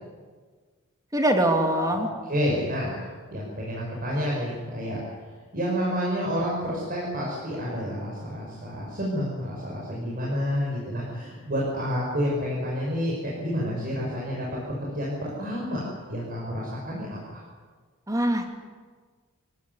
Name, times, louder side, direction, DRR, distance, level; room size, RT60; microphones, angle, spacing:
voice 1, 1.1-2.1 18.1-18.5, right 1 dB, 15° right, 4 dB, 3.0 m, -23 dB
voice 2, 2.3-5.0 5.5-14.5 14.8-15.8 16.1-17.2, equal, 45° right, -4 dB, 6.2 m, -29 dB
25.5 x 18.0 x 9.8 m, 1.5 s
head